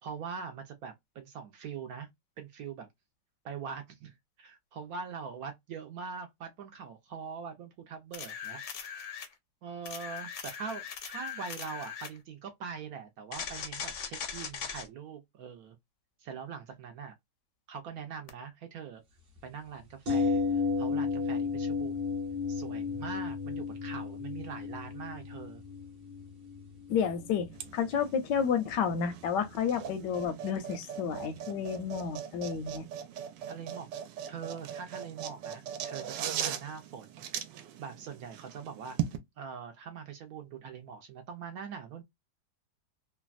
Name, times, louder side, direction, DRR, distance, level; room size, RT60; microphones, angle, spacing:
voice 1, 0.0-2.1 2.4-2.9 3.4-9.2 9.6-15.8 16.2-17.1 17.7-19.0 19.4-22.0 22.5-25.6 33.5-37.2 37.8-39.0 39.4-42.0, right 6 dB, 70° right, 0.9 m, -43 dB
sound 1, 8.1-9.3 9.9-12.2 13.3-14.9 18.3-18.4, left 7 dB, 65° left, 0.7 m, -40 dB
sound 2, 20.1-29.9 30.2-30.3, left 5 dB, 40° right, 0.9 m, -34 dB
voice 2, 26.9-32.9, left 7 dB, 80° left, 1.2 m, -31 dB
sound 3, 27.5-39.2, right 9 dB, 85° right, 1.3 m, -40 dB
3.2 x 2.1 x 2.3 m
omnidirectional pair, 1.9 m